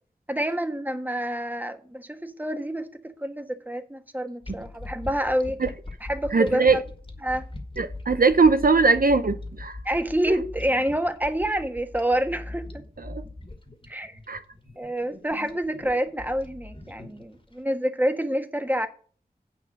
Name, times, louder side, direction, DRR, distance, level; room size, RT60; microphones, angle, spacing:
voice 1, 0.3-5.6 6.1-6.8 7.2-7.4 9.8-12.8 13.9-14.2 14.8-18.9, right 1 dB, 10° right, 1.4 m, -27 dB
sound 1, 4.4-17.5, left 2 dB, 30° left, 1.9 m, -40 dB
voice 2, 6.3-6.8 7.8-9.8 13.0-13.2 14.3-14.4, right 4 dB, 60° right, 0.7 m, -20 dB
9.5 x 5.6 x 6.7 m
wide cardioid pair, 60°, 16 cm